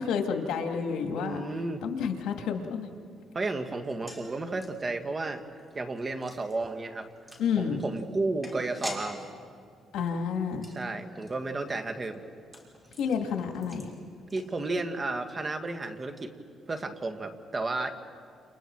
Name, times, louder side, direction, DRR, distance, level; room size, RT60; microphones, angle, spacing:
voice 1, 0.0-1.4 1.8-2.9 7.4-7.8 9.9-10.7 13.0-13.9, left 6 dB, 80° left, 4 dB, 2.1 m, -30 dB
voice 2, 1.1-1.8 3.3-5.4 5.7-7.1 7.6-9.2 10.8-12.2 14.3-16.3 16.7-17.9, right 2 dB, 30° right, 6 dB, 1.9 m, -32 dB
sound 1, 3.8-15.0 15.3-15.4 15.7-15.9, equal, 5° right, 5.9 m, -47 dB
29.5 x 29.0 x 4.7 m, 2.2 s
cardioid pair, 90°, 0 cm